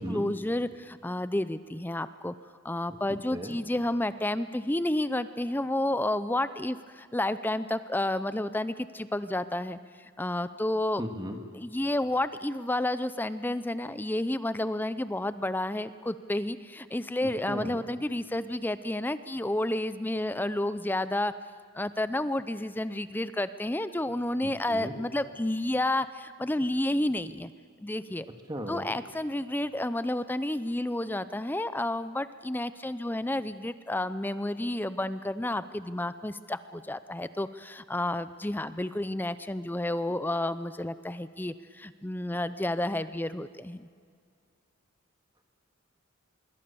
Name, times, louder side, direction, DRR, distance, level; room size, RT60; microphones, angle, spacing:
voice 1, 0.0-2.3 2.6-9.8 10.2-11.0 11.5-21.3 21.7-27.5 27.8-28.3 28.7-43.9, left 1 dB, 10° left, 13 dB, 0.5 m, -30 dB
voice 2, 11.0-11.4 17.2-17.7 24.4-25.0 28.5-28.9, equal, 20° right, 4 dB, 1.8 m, -36 dB
25.5 x 23.0 x 6.9 m, 2.1 s
head